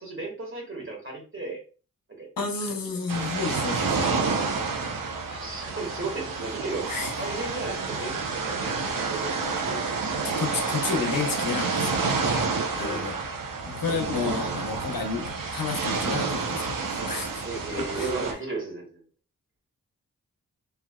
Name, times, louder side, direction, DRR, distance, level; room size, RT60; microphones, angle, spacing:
voice 1, 0.0-1.6 2.2-2.3 5.3-6.9 7.2-10.3 12.8-13.0 17.4-19.0, right 3 dB, 35° right, -1 dB, 1.7 m, -35 dB
voice 2, 2.4-4.1 6.9-7.1 10.4-12.2 12.8-13.2 13.6-18.1, left 5 dB, 85° left, 2 dB, 0.8 m, -31 dB
sound 1, 3.1-18.3, right 4 dB, 75° right, 0.7 m, -29 dB
3.2 x 3.0 x 2.3 m, 0.35 s
cardioid pair, 55°, 33 cm